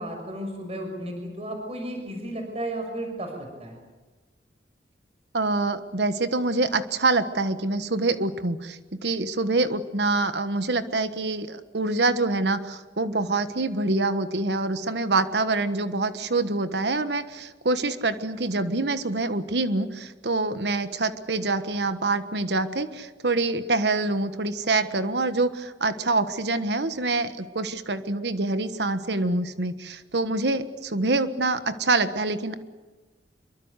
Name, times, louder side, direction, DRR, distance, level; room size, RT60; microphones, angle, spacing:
voice 1, 0.0-3.8, right 1 dB, 35° right, 4 dB, 6.2 m, -33 dB
voice 2, 5.3-32.6, right 3 dB, 70° right, 11 dB, 1.4 m, -26 dB
26.5 x 23.5 x 8.2 m, 1.2 s
head